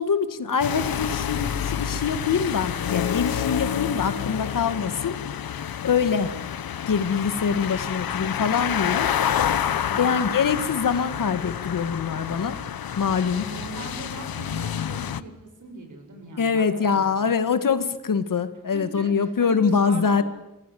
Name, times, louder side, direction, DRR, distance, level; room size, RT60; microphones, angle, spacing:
voice 1, 0.0-5.2 5.8-6.3 6.9-9.1 10.0-12.6 13.0-13.4 16.4-20.2, left 6 dB, 65° left, 10 dB, 1.9 m, -24 dB
sound 1, 0.6-15.2, left 9 dB, 85° left, 1.1 m, -28 dB
voice 2, 9.8-10.2 13.3-17.3 18.7-20.2, right 3 dB, 60° right, 4 dB, 7.4 m, -40 dB
27.5 x 21.0 x 9.4 m, 0.93 s
wide cardioid pair, 150°, 35 cm